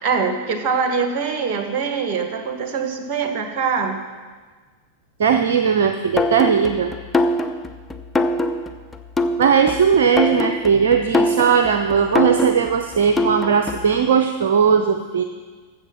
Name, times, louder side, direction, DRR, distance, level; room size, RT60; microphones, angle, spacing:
voice 1, 0.0-4.0, right 5 dB, 40° right, 5 dB, 1.7 m, -23 dB
voice 2, 5.2-6.9 9.4-15.2, right 6 dB, 55° right, 7 dB, 0.6 m, -18 dB
sound 1, 6.2-14.0, left 2 dB, 15° left, 0.7 m, -23 dB
13.5 x 7.7 x 5.9 m, 1.4 s
figure-of-eight pair, 90°, 0 cm